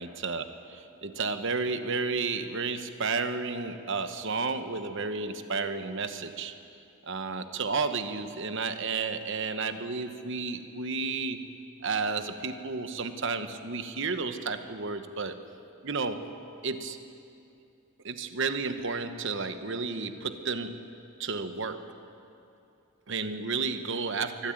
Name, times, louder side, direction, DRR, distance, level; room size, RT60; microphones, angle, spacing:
voice 1, 0.0-6.5 7.0-11.4 11.8-15.4 15.8-16.2 16.6-17.0 18.0-20.8 21.2-21.8 23.1-24.5, right 4 dB, 60° right, 9 dB, 1.1 m, -32 dB
23.5 x 12.5 x 9.0 m, 2.6 s
head